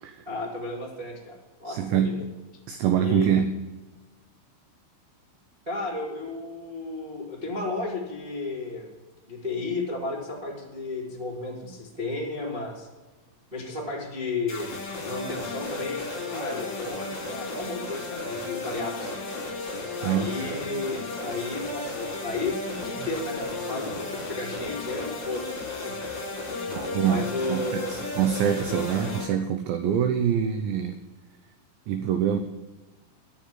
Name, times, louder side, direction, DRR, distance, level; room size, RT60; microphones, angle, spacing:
voice 1, 0.2-2.1 3.0-3.3 5.6-8.9 9.3-12.9 13.5-14.7 15.0-19.2 20.0-25.5 25.8-26.1 26.4-26.7 27.0-28.1, left 3 dB, 65° right, -4 dB, 0.5 m, -33 dB
voice 2, 1.7-2.3 2.7-3.6 20.0-20.4 26.7-27.2 27.5-31.0 31.9-32.4, right 8 dB, 80° right, 8 dB, 2.6 m, -25 dB
sound 1, 14.5-29.2, left 3 dB, 30° left, 2.5 m, -34 dB
11.5 x 7.2 x 7.7 m, 1.2 s
omnidirectional pair, 6.0 m